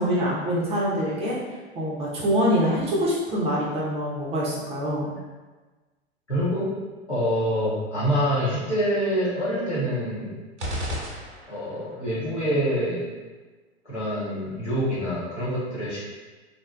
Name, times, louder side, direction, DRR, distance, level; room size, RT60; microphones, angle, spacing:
voice 1, 0.0-1.4 1.7-5.1, equal, 20° right, -5 dB, 0.4 m, -25 dB
voice 2, 6.3-6.7 7.1-10.4 11.5-13.1 13.8-16.2, equal, 90° left, -10 dB, 1.0 m, -26 dB
sound 1, 10.6-11.9, equal, 85° right, 0.5 m, -32 dB
2.6 x 2.1 x 2.2 m, 1.3 s
figure-of-eight pair, 85°, 33 cm